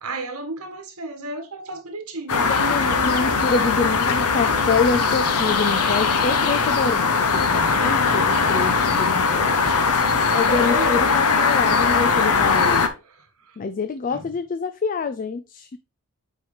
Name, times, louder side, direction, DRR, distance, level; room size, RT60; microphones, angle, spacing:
voice 1, 0.0-2.9 8.1-8.3 10.6-11.1 14.1-14.2, right 2 dB, 75° right, 1.7 m, -34 dB
sound 1, 2.3-12.9, left 4 dB, 90° left, 1.0 m, -20 dB
voice 2, 2.4-9.7 10.3-12.8 13.6-15.8, left 4 dB, 35° left, 0.4 m, -26 dB
7.7 x 4.8 x 3.3 m
head